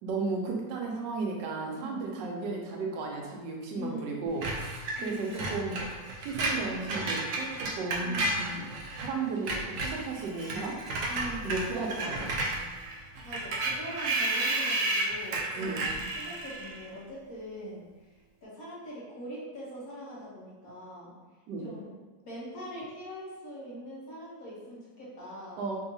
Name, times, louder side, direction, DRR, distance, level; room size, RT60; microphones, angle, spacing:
voice 1, 0.0-5.8 6.2-8.7 9.0-10.8 11.4-12.4 15.5-15.9 21.5-21.7 25.6-25.8, right 3 dB, 85° right, 0 dB, 1.3 m, -34 dB
voice 2, 1.8-2.2 3.7-4.2 5.0-5.5 8.0-8.6 11.1-12.2 12.9-17.8 18.4-21.1 21.6-25.6, equal, 60° left, -6 dB, 1.3 m, -42 dB
Screech, 4.4-9.1 9.4-16.8, right 2 dB, 70° right, 0.9 m, -32 dB
3.5 x 2.7 x 2.6 m, 1.2 s
omnidirectional pair, 1.9 m